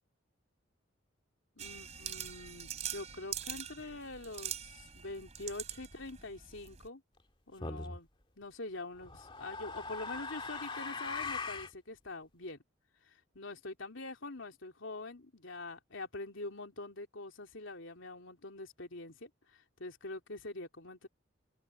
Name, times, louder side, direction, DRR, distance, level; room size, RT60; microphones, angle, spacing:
voice 1, 1.6-7.0 7.5-8.1 8.4-12.6 13.0-21.1, left 2 dB, 70° left, 3.2 m, -45 dB
sound 1, 1.6-6.9, right 9 dB, 35° right, 3.3 m, -43 dB
sound 2, 7.6-8.0 9.0-11.7, left 4 dB, 25° left, 2.3 m, -40 dB
head